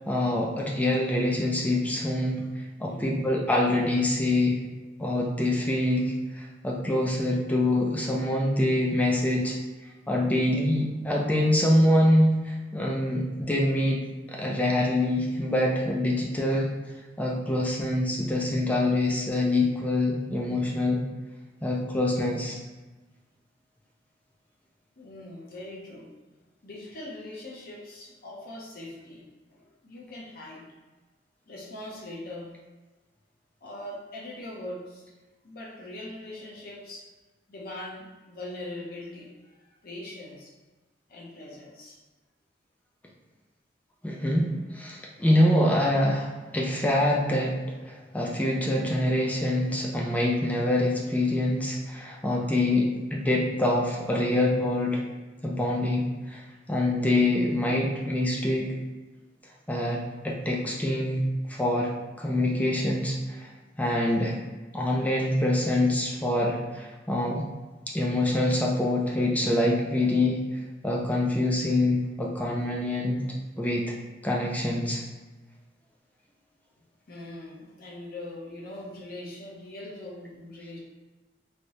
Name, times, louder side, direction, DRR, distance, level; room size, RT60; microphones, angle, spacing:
voice 1, 0.1-4.6 5.0-9.6 10.1-14.0 14.3-16.7 17.2-21.0 21.6-22.6 44.0-55.0 55.4-56.4 56.7-58.8 59.7-61.9 62.2-63.5 63.8-64.4 64.7-67.4 67.9-70.4 70.8-73.2 73.6-73.9 74.2-75.0, left 1 dB, 10° left, -2 dB, 0.4 m, -25 dB
voice 2, 2.8-3.2 25.0-26.1 26.6-29.2 29.5-30.7 31.5-32.5 33.6-35.1 35.4-37.1 37.5-40.5 41.1-42.0 77.1-80.8, left 1 dB, 55° left, -4 dB, 0.7 m, -41 dB
3.2 x 3.0 x 2.6 m, 1.2 s
head